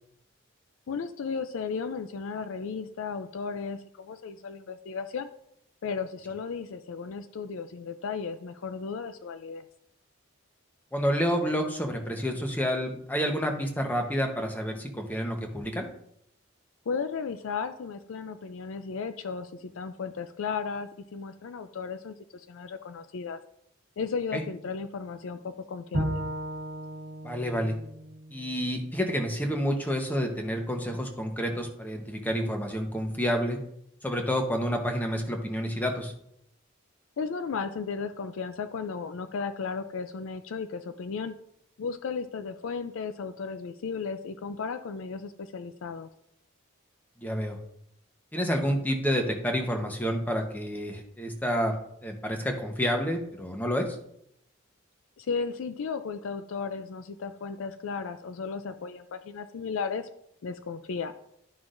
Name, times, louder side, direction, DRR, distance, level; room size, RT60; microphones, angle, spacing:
voice 1, 0.9-5.3 5.8-9.6 16.9-23.4 24.0-26.2 37.2-41.3 41.8-46.1 55.2-60.1 60.4-61.1, left 5 dB, 70° left, 10 dB, 0.4 m, -35 dB
voice 2, 10.9-15.9 24.3-24.4 27.2-27.8 28.3-33.6 34.0-36.1 47.2-47.6 48.3-51.7 52.0-54.0, equal, 10° left, 3 dB, 0.9 m, -29 dB
Bowed string instrument, 25.9-29.2, right 1 dB, 75° right, 1.2 m, -35 dB
11.5 x 5.9 x 2.5 m, 0.73 s
head